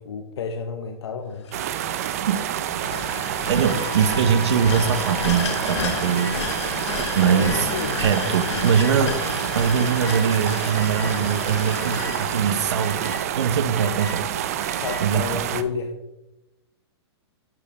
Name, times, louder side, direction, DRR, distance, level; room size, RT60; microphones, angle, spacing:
voice 1, 0.0-1.5 7.2-8.0 11.0-11.4 14.7-15.9, left 5 dB, 70° left, 6 dB, 0.8 m, -31 dB
sound 1, 1.4-13.5, left 5 dB, 85° left, 1.5 m, -33 dB
sound 2, 1.5-15.6, right 10 dB, 35° right, 0.4 m, -28 dB
sound 3, 3.5-5.4 6.1-6.4 7.4-7.6 8.7-8.9 10.0-10.2 10.7-11.2 11.7-12.2 12.8-13.2 13.7-14.2 14.6-15.0, left 5 dB, 10° left, 0.9 m, -38 dB
voice 2, 3.5-6.4 7.1-7.7 8.0-9.2 9.5-14.3 15.0-15.3, right 7 dB, 75° right, 10 dB, 0.9 m, -22 dB
11.5 x 5.1 x 3.4 m, 0.98 s
hypercardioid pair, 175°, 14 cm